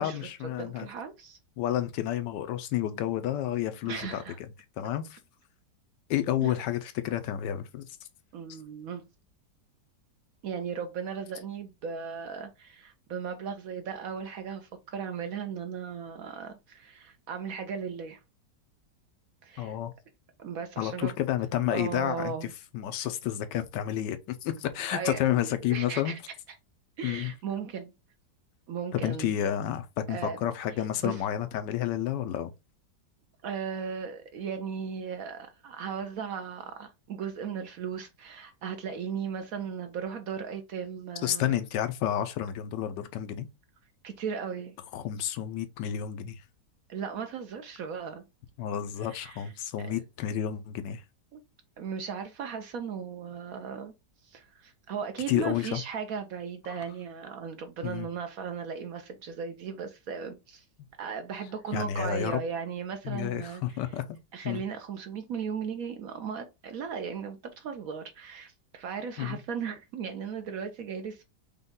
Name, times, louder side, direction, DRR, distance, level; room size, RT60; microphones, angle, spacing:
voice 1, 0.0-0.9 1.6-4.2 4.8-5.2 6.1-7.9 19.6-19.9 20.8-22.3 22.7-26.1 27.0-27.3 28.9-32.5 41.2-43.5 44.9-46.4 48.6-51.0 55.3-55.8 57.8-58.1 61.7-62.4 63.0-64.2 64.4-64.6 69.2-69.4, left 11 dB, 80° left, 1.2 m, -30 dB
voice 2, 0.6-1.4 3.9-4.4 6.4-6.5 8.3-9.1 10.4-18.2 19.4-19.8 20.4-21.1 21.7-22.5 24.9-26.2 27.0-27.9 28.7-29.3 30.1-30.4 31.0-31.2 33.4-41.6 44.0-44.8 46.9-48.2 49.0-49.5 49.8-49.9 51.3-51.4 51.8-53.9 54.2-60.6 61.0-63.6 64.3-71.2, right 6 dB, 65° right, 0.9 m, -37 dB
5.2 x 2.3 x 3.6 m
omnidirectional pair, 1.9 m